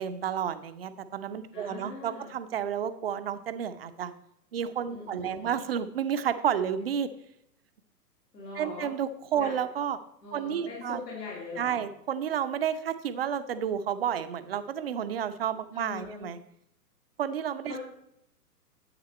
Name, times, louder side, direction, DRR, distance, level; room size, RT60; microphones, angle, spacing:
voice 1, 0.0-4.1 4.5-7.1 8.6-10.0 10.3-11.0 11.6-16.4 17.2-17.7, right 8 dB, 40° right, 11 dB, 0.5 m, -31 dB
voice 2, 1.5-2.3 4.9-5.6 8.3-8.9 9.4-9.5 10.2-11.8 15.7-16.3 17.6-17.8, left 4 dB, 75° left, -6 dB, 3.0 m, -41 dB
9.7 x 7.9 x 4.2 m, 0.77 s
figure-of-eight pair, 115°, 50 cm